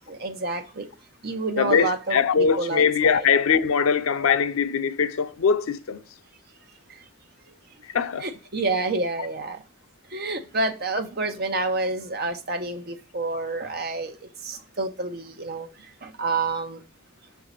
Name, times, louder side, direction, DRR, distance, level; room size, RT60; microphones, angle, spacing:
voice 1, 0.1-0.9 1.2-3.2 8.2-9.6 10.1-14.1 14.4-15.7 16.0-16.8, right 3 dB, 50° right, 0.9 m, -28 dB
voice 2, 1.6-6.0 7.9-8.3, left 6 dB, 90° left, 0.5 m, -22 dB
6.4 x 4.7 x 3.9 m
head